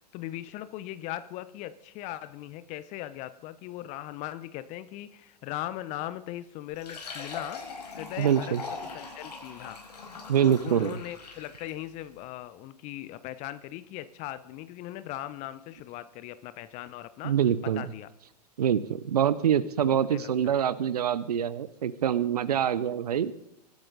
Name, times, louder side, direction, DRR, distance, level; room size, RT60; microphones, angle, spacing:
voice 1, 0.1-7.6 7.9-8.6 8.9-9.8 10.4-17.3 17.6-18.1 19.8-20.6 22.5-22.7, left 14 dB, 35° left, 15 dB, 0.8 m, -39 dB
Fill (with liquid), 6.7-11.8, left 4 dB, 70° left, 5.1 m, -41 dB
voice 2, 8.2-8.6 10.3-11.0 17.2-17.8 18.6-23.3, right 9 dB, 70° right, 16 dB, 0.8 m, -25 dB
25.0 x 12.0 x 4.0 m, 0.80 s
figure-of-eight pair, 100°, 21 cm